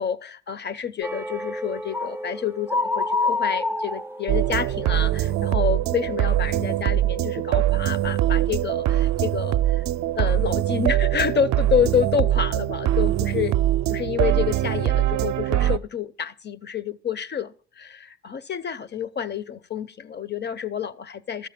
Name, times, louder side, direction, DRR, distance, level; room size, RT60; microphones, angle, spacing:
voice 1, 0.0-9.8 10.2-13.6 13.9-21.5, left 8 dB, 35° left, 0.6 m, -28 dB
sound 1, 1.0-6.8 7.1-7.4 7.8-8.0, left 3 dB, 10° right, 0.4 m, -29 dB
Eleonor's will. - Electronic track music, 4.3-15.8, right 13 dB, 65° right, 0.5 m, -22 dB
13.0 x 7.0 x 5.9 m
cardioid pair, 90°, 30 cm